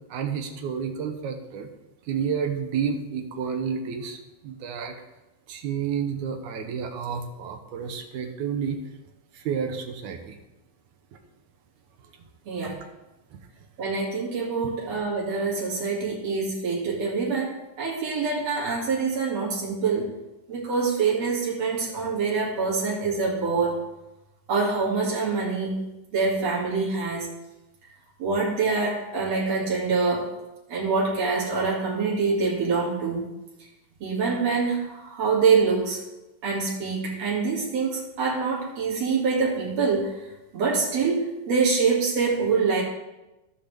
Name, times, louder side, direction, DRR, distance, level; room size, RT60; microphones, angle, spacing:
voice 1, 0.1-1.7 2.1-5.0 5.5-8.8 9.3-10.4, right 7 dB, 75° right, 4 dB, 2.3 m, -30 dB
voice 2, 12.5-12.8 13.8-20.1 20.5-23.8 24.5-27.3 28.2-30.3 30.7-33.3 34.0-36.0 36.4-40.1 40.5-42.8, right 4 dB, 55° right, -5 dB, 3.4 m, -25 dB
15.5 x 5.8 x 3.4 m, 1.0 s
omnidirectional pair, 3.6 m